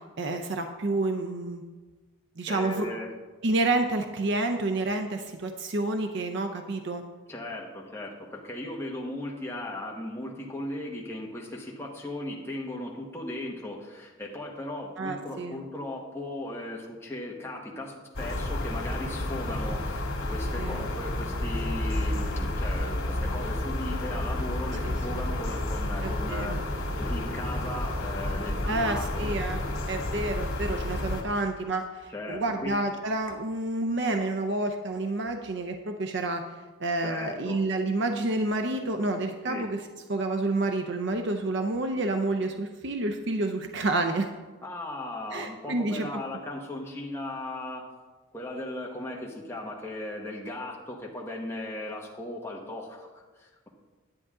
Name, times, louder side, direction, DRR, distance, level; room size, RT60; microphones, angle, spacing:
voice 1, 0.2-1.6 2.4-2.9 3.4-7.0 15.0-15.6 20.6-20.8 24.8-25.2 26.0-26.6 28.7-29.6 29.9-36.4 36.8-39.8 40.1-44.3 45.3-46.1, right 2 dB, 55° right, 6 dB, 0.6 m, -29 dB
voice 2, 2.5-3.1 7.3-29.3 32.1-32.8 37.0-37.6 39.5-39.6 44.6-47.8 48.3-53.7, left 1 dB, 10° left, -2 dB, 1.2 m, -37 dB
sound 1, 18.1-31.2, left 1 dB, 85° left, 1.8 m, -30 dB
10.5 x 8.8 x 3.7 m, 1.3 s
head